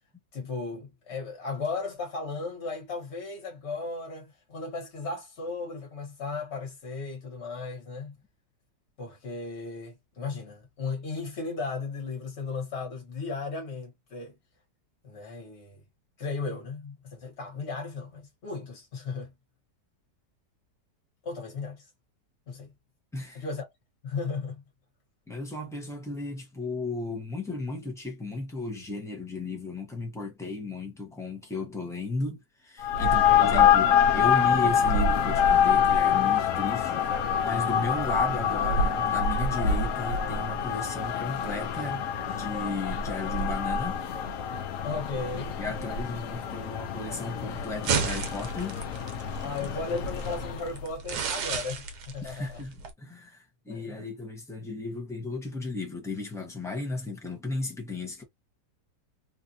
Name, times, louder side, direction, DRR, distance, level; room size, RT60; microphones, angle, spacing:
voice 1, 0.3-8.1 9.0-14.3 15.0-15.8 16.2-19.3 21.2-21.8 22.5-22.7 23.3-23.7 24.0-24.6 33.0-33.7 44.8-45.5 49.4-52.6 53.7-53.9, left 4 dB, 40° left, 1.4 m, -35 dB
voice 2, 23.1-23.5 25.3-33.9 34.1-37.1 37.4-44.0 45.6-48.8 52.2-58.2, left 3 dB, 5° left, 0.4 m, -35 dB
sound 1, 32.8-50.7, left 7 dB, 65° left, 0.8 m, -26 dB
sound 2, 47.5-52.9, right 5 dB, 70° right, 1.3 m, -34 dB
3.2 x 2.5 x 2.7 m
omnidirectional pair, 1.8 m